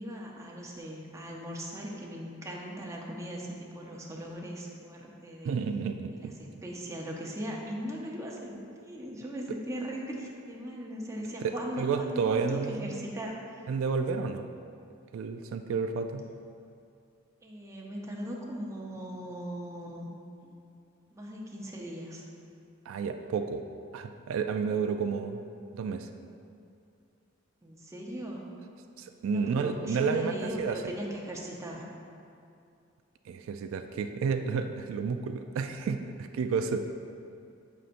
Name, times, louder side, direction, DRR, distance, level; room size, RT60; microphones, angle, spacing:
voice 1, 0.0-5.6 6.2-13.6 17.4-20.1 20.4-20.5 21.1-22.2 27.6-28.5 29.3-31.9, equal, 15° right, -2 dB, 0.7 m, -39 dB
voice 2, 5.4-6.3 11.4-13.0 13.7-14.5 15.1-16.2 22.9-23.6 23.9-25.4 25.7-26.1 29.0-30.8 33.3-36.9, right 5 dB, 85° right, 6 dB, 0.3 m, -31 dB
7.6 x 5.5 x 2.5 m, 2.5 s
head